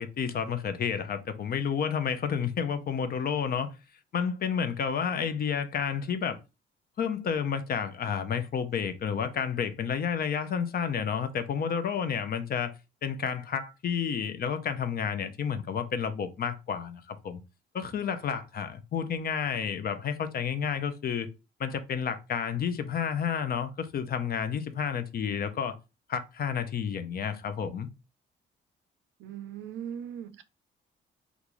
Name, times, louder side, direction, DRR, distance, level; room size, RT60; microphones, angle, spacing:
voice 1, 0.0-3.7 4.1-6.4 7.0-12.7 13.0-17.4 17.7-21.3 21.6-25.8 26.1-27.9, left 7 dB, 50° left, 0.6 m, -30 dB
voice 2, 29.2-30.4, right 9 dB, 70° right, 0.5 m, -39 dB
3.5 x 2.5 x 3.0 m
cardioid pair, 90°, 20 cm